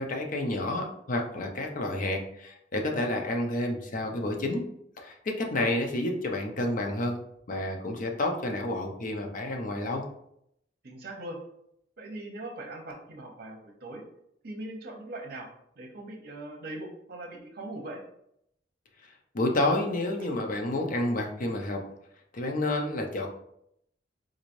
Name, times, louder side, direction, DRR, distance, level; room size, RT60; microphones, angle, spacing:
voice 1, 0.0-4.7 5.0-7.2 7.5-10.0 19.3-21.8 22.3-23.3, left 1 dB, 45° left, 3 dB, 0.6 m, -29 dB
voice 2, 10.8-11.4 12.0-14.0 14.4-15.5 15.8-18.0, right 1 dB, 60° right, 2 dB, 0.8 m, -40 dB
3.9 x 3.1 x 2.6 m, 0.74 s
head